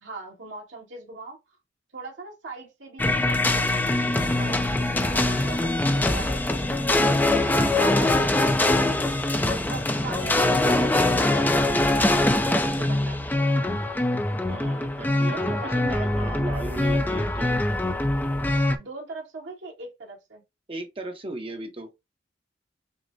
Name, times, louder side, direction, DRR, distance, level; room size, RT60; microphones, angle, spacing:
voice 1, 0.0-1.4 1.9-3.8 4.2-8.6 9.5-11.4 12.5-13.2 15.2-15.8 18.8-20.4, right 3 dB, 75° right, 1.9 m, -40 dB
sound 1, 3.0-18.8, left 2 dB, 10° left, 0.4 m, -23 dB
voice 2, 14.5-17.6 20.7-21.9, right 2 dB, 30° right, 0.7 m, -36 dB
6.2 x 2.1 x 2.6 m
head